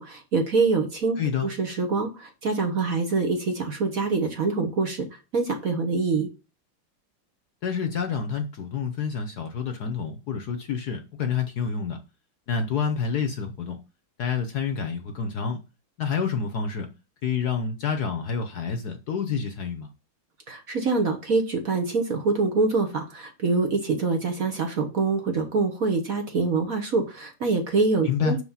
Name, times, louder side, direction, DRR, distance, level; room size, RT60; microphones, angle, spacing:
voice 1, 0.0-6.3 20.5-28.4, right 4 dB, 50° right, 1.2 m, -25 dB
voice 2, 1.2-1.5 7.6-12.0 12.5-13.8 14.2-15.6 16.0-16.9 17.2-19.9 28.0-28.4, left 6 dB, 60° left, 1.2 m, -28 dB
6.4 x 4.8 x 5.6 m
omnidirectional pair, 2.4 m